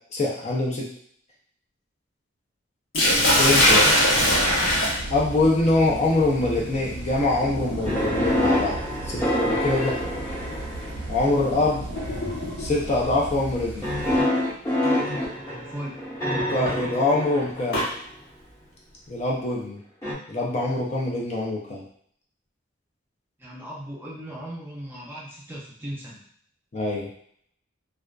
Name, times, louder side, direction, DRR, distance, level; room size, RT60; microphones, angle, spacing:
voice 1, 0.1-0.9 3.3-3.9 5.1-8.8 9.1-9.9 11.1-11.9 12.6-13.9 16.3-17.8 19.1-19.8 20.3-21.8 26.7-27.1, left 2 dB, 35° left, -3 dB, 0.5 m, -24 dB
Sink (filling or washing), 2.9-12.9 14.0-14.3 14.8-14.9 16.4-17.9, equal, 75° left, 0.9 m, -24 dB
sound 1, 3.1-14.2, right 2 dB, 65° right, 0.5 m, -36 dB
voice 2, 3.6-4.1 9.6-10.0 15.4-16.0 23.4-26.2, equal, 10° right, -5 dB, 0.6 m, -37 dB
sound 2, 7.8-11.2 12.0-12.4 13.8-17.9 20.0-20.1, left 1 dB, 15° left, 0.9 m, -26 dB
2.5 x 2.2 x 2.2 m, 0.62 s
head